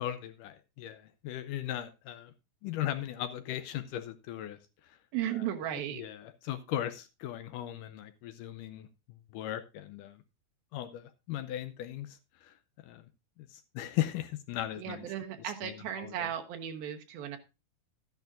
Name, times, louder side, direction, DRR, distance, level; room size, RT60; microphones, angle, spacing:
voice 1, 0.0-2.3 2.6-4.6 4.8-5.0 5.9-10.2 10.7-12.5 12.8-13.1 13.5-15.1 15.6-16.3, left 12 dB, 75° left, 11 dB, 2.0 m, -38 dB
voice 2, 5.1-6.0 14.8-17.4, right 11 dB, 80° right, 5 dB, 3.0 m, -36 dB
13.0 x 10.5 x 2.5 m, 0.27 s
omnidirectional pair, 4.2 m